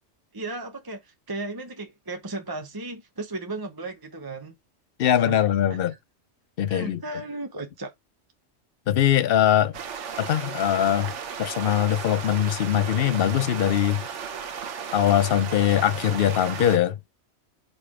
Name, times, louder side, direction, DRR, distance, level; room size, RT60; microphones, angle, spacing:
voice 1, 0.3-4.5 5.2-5.8 6.7-7.9, right 2 dB, 20° right, 0.8 m, -35 dB
voice 2, 5.0-5.9 6.6-7.0 8.9-9.7 10.2-11.1 11.4-14.0 14.9-17.0, left 10 dB, 60° left, 0.7 m, -22 dB
sound 1, 9.7-16.8, right 7 dB, 75° right, 1.2 m, -35 dB
5.2 x 4.3 x 4.9 m
omnidirectional pair, 1.2 m